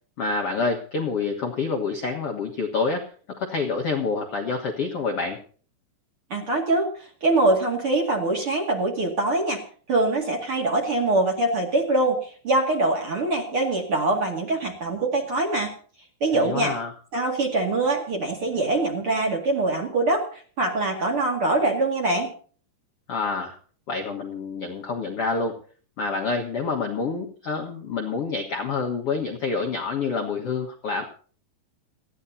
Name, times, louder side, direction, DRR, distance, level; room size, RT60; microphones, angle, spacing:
voice 1, 0.2-3.1 3.4-5.4 16.3-16.9 23.1-23.5 23.9-25.6 26.0-31.0, left 4 dB, 60° left, 2 dB, 1.5 m, -27 dB
voice 2, 6.3-6.9 7.2-9.6 9.9-15.7 16.2-16.7 17.1-22.3, right 2 dB, 40° right, 1 dB, 2.3 m, -23 dB
29.0 x 10.0 x 2.8 m, 0.43 s
omnidirectional pair, 5.0 m